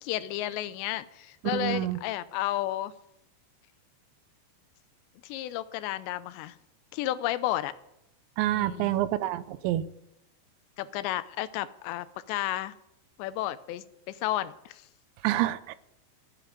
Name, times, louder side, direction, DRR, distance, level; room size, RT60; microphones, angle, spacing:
voice 1, 0.0-2.9 5.2-6.6 6.9-7.7 8.5-8.9 10.8-12.7 13.2-14.9, left 14 dB, 80° left, 14 dB, 2.9 m, -32 dB
voice 2, 1.5-2.0 8.4-9.8 15.2-15.8, right 14 dB, 85° right, 15 dB, 3.0 m, -27 dB
14.5 x 7.9 x 9.5 m, 0.83 s
omnidirectional pair, 5.1 m